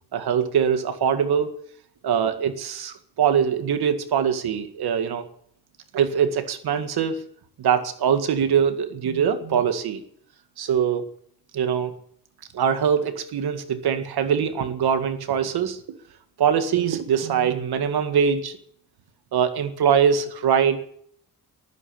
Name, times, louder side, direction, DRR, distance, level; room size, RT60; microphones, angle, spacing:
voice 1, 0.1-1.5 2.0-5.2 5.9-7.2 7.6-10.0 10.6-11.1 11.5-11.9 12.5-15.8 16.4-18.6 19.3-21.0, right 7 dB, 75° right, 9 dB, 2.0 m, -22 dB
14.5 x 11.5 x 8.6 m, 0.65 s
cardioid pair, 85°, 38 cm